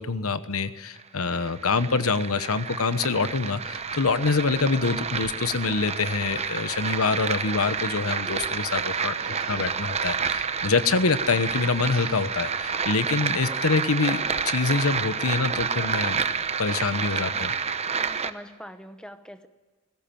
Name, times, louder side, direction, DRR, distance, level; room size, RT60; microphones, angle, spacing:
voice 1, 0.0-9.2 9.5-16.2 16.6-17.5, left 4 dB, 85° left, 12 dB, 1.1 m, -25 dB
sound 1, 1.0-18.3, right 6 dB, 30° right, 0.8 m, -29 dB
sound 2, 3.7-13.0, right 4 dB, 85° right, 2.9 m, -49 dB
voice 2, 13.5-13.8 16.3-16.4 17.3-17.4 18.0-19.5, equal, 5° left, 9 dB, 0.9 m, -44 dB
19.0 x 16.5 x 9.1 m, 1.4 s
head